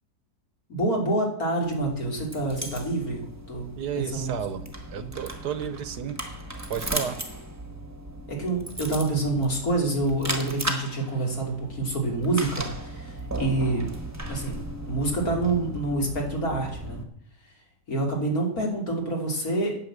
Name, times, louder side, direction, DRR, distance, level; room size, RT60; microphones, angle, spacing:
voice 1, 0.7-3.7 4.0-4.3 5.0-5.1 8.3-13.9 14.3-17.0 17.9-19.8, right 2 dB, 55° left, 0 dB, 3.5 m, -27 dB
sound 1, 1.6-17.0, right 1 dB, 10° right, 1.4 m, -36 dB
voice 2, 3.8-6.2 6.7-7.2, right 8 dB, 70° right, 11 dB, 1.4 m, -32 dB
9.7 x 9.3 x 7.4 m, 0.66 s
omnidirectional pair, 1.8 m